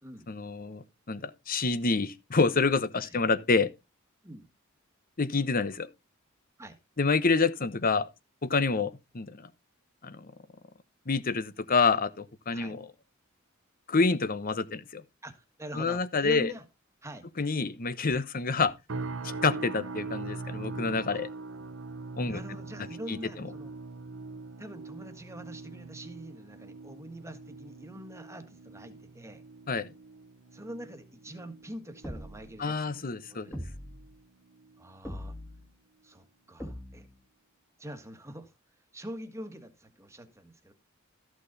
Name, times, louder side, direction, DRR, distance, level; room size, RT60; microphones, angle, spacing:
voice 1, 0.3-3.7 5.2-5.9 7.0-8.1 8.4-9.5 10.0-10.3 11.1-12.9 13.9-15.0 15.7-16.5 17.4-18.7 19.2-21.3 22.2-22.4 23.1-23.2 29.7-29.9 32.6-33.5, left 4 dB, 45° left, 0.9 m, -27 dB
voice 2, 15.2-16.6 17.0-17.3 21.1-21.2 22.2-23.7 24.6-29.4 30.5-33.0 33.3-33.5 34.8-35.3 36.0-37.1 37.8-38.5 38.9-40.7, right 1 dB, 15° right, 1.6 m, -44 dB
sound 1, 18.9-34.1 34.4-34.8 35.3-35.5, right 3 dB, 70° right, 1.0 m, -42 dB
sound 2, 32.0-32.6 33.5-34.1 35.0-35.7 36.6-37.2, equal, 10° left, 2.0 m, -41 dB
13.5 x 6.3 x 4.0 m
head